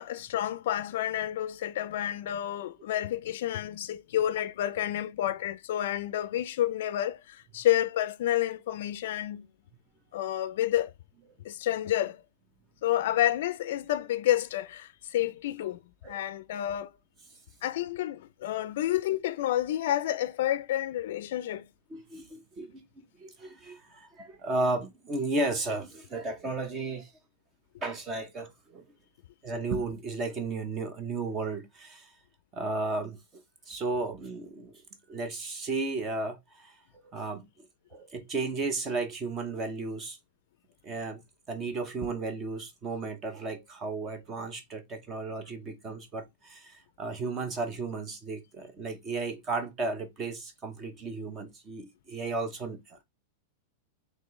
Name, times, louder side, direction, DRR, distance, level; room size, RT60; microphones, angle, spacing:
voice 1, 0.0-9.5 10.1-10.9 11.4-12.2 12.8-15.8 16.1-16.9 17.6-21.7, left 12 dB, 60° left, 0.4 m, -29 dB
voice 2, 21.9-27.1 27.8-28.8 29.4-32.1 32.5-33.2 33.7-34.8 35.1-36.8 37.1-37.7 37.9-40.2 40.8-41.2 41.5-53.0, right 3 dB, 20° right, 0.7 m, -34 dB
4.2 x 3.1 x 3.1 m
supercardioid pair, 175°, 0 cm